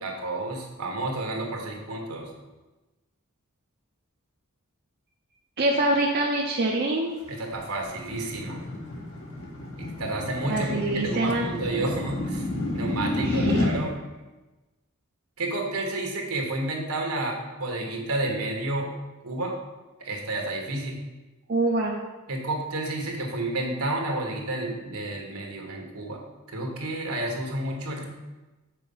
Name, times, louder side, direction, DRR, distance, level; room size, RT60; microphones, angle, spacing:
voice 1, 0.0-2.3 7.3-8.6 9.8-12.5 12.7-14.0 15.4-18.9 19.2-19.6 20.0-21.0 22.3-26.2 26.5-28.1, right 2 dB, 75° right, 1 dB, 1.4 m, -30 dB
voice 2, 5.6-7.1 10.5-11.5 13.2-13.6 21.5-22.0, right 2 dB, 50° right, -1 dB, 0.7 m, -25 dB
sound 1, 7.2-13.7, left 2 dB, 65° left, 1.8 m, -30 dB
5.8 x 4.6 x 5.4 m, 1.1 s
head